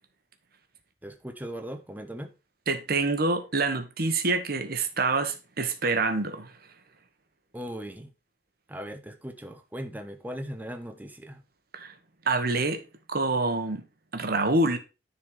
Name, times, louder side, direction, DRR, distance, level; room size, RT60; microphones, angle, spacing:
voice 1, 1.0-2.3 7.5-8.1 8.7-11.4, equal, 10° right, 1.1 m, -38 dB
voice 2, 2.7-6.5 11.7-11.9 12.2-12.8 13.1-13.8 14.1-14.8, right 3 dB, 55° right, 1.3 m, -26 dB
10.0 x 4.5 x 4.9 m
head